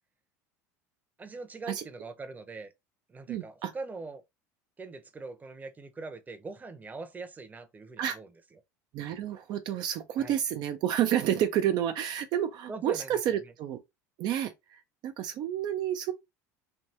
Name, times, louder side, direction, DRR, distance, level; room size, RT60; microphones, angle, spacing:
voice 1, 1.2-2.7 3.1-4.2 4.8-8.3 10.2-10.4 12.7-13.5, right 3 dB, 20° right, 0.8 m, -42 dB
voice 2, 3.3-3.7 8.0-8.2 8.9-13.8 14.2-16.1, right 10 dB, 55° right, 0.5 m, -30 dB
3.3 x 2.6 x 2.8 m
supercardioid pair, 95°, 8 cm